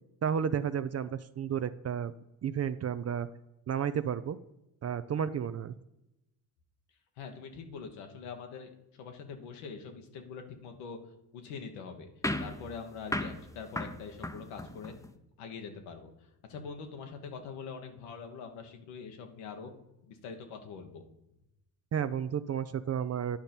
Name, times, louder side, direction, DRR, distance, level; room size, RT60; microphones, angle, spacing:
voice 1, 0.2-2.1 2.4-3.3 3.7-4.4 4.8-5.8 21.9-23.4, right 8 dB, 35° right, 13 dB, 0.4 m, -32 dB
voice 2, 7.2-11.0 11.3-12.1 12.4-14.9 15.4-19.7 20.0-21.0, left 5 dB, 80° left, 5 dB, 1.3 m, -44 dB
sound 1, 12.2-15.1, left 1 dB, 5° left, 0.7 m, -36 dB
10.0 x 5.2 x 4.4 m, 0.89 s
supercardioid pair, 60°, 50 cm